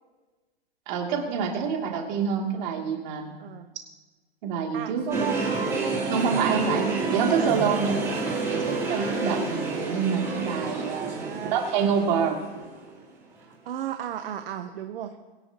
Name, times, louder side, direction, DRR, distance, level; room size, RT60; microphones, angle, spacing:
voice 1, 0.9-3.3 4.4-5.0 6.1-8.0 8.5-11.2 11.5-12.4, right 6 dB, 45° right, 1 dB, 2.7 m, -26 dB
voice 2, 4.7-6.1 11.0-11.6 13.7-15.1, right 10 dB, 60° right, 6 dB, 1.0 m, -34 dB
sound 1, 5.1-13.1 13.5-13.6, right 3 dB, 10° right, 3.3 m, -29 dB
23.0 x 10.5 x 2.9 m, 1.3 s
hypercardioid pair, 150°, 32 cm